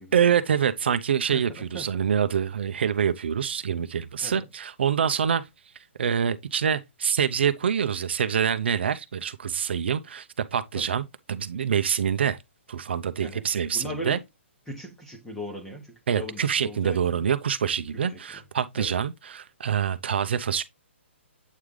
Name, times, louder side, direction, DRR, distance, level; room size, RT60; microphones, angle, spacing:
voice 1, 0.1-5.5 6.0-12.4 12.7-14.2 16.1-20.6, right 8 dB, 55° right, 0.6 m, -26 dB
voice 2, 1.3-1.9 4.2-4.5 10.7-10.9 13.2-13.4 13.7-14.2 14.7-17.2 17.9-18.0 18.3-18.4 18.7-18.9, left 1 dB, 5° left, 1.0 m, -38 dB
8.3 x 3.3 x 3.7 m
hypercardioid pair, 170°, 7 cm